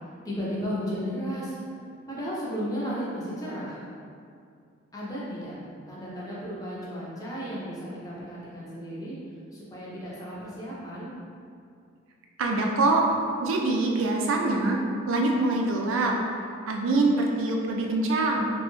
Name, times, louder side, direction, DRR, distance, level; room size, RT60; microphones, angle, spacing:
voice 1, 0.2-1.6 2.1-3.8 4.9-5.6 5.9-9.2 9.5-11.1, equal, 20° left, -7 dB, 0.5 m, -34 dB
voice 2, 12.4-13.0 13.4-16.1 16.7-18.5, right 2 dB, 85° right, 0 dB, 0.4 m, -24 dB
3.0 x 2.2 x 3.0 m, 2.4 s
head